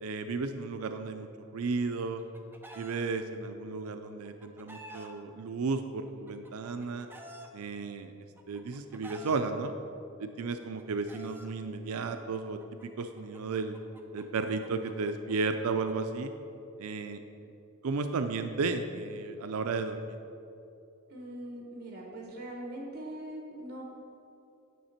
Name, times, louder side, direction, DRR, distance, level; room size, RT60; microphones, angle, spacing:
voice 1, 0.0-2.2 2.8-7.1 7.5-8.1 8.5-9.7 10.2-13.7 14.1-16.3 16.8-17.2 17.8-20.2, right 4 dB, 85° right, 7 dB, 0.5 m, -34 dB
Chicken rooster, 1.8-3.0 4.0-5.1 6.1-7.5 8.4-9.4 10.4-11.5 12.6-15.9, right 1 dB, 10° right, 0.6 m, -50 dB
voice 2, 21.1-23.8, right 1 dB, 50° right, -1 dB, 1.4 m, -41 dB
9.2 x 6.8 x 4.3 m, 2.7 s
head